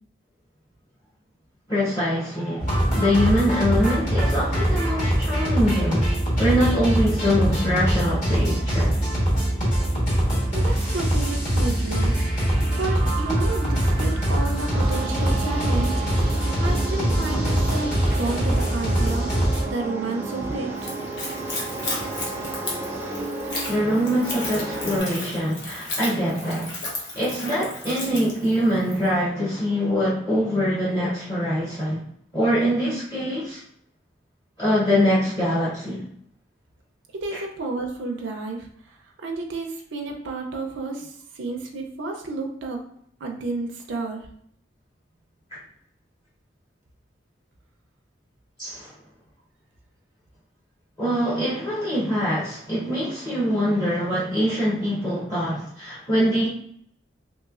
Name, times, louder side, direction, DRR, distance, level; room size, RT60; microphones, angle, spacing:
voice 1, 1.7-9.0 21.4-22.0 23.7-26.8 27.1-32.0 32.3-33.6 34.6-36.0 37.3-37.4 48.6-48.9 51.0-56.5, equal, 25° left, -9 dB, 0.8 m, -24 dB
sound 1, 2.6-19.6, right 1 dB, 45° left, 1.3 m, -23 dB
voice 2, 10.5-16.0 16.6-19.3 19.7-20.9 37.1-42.8 43.2-44.3, right 3 dB, 75° right, 1 dB, 0.5 m, -31 dB
sound 2, 14.7-25.0, right 2 dB, 15° right, 0.5 m, -32 dB
Splash splatter / Trickle dribble, 20.7-29.1, left 2 dB, 70° left, 0.8 m, -34 dB
3.0 x 3.0 x 2.4 m, 0.68 s
head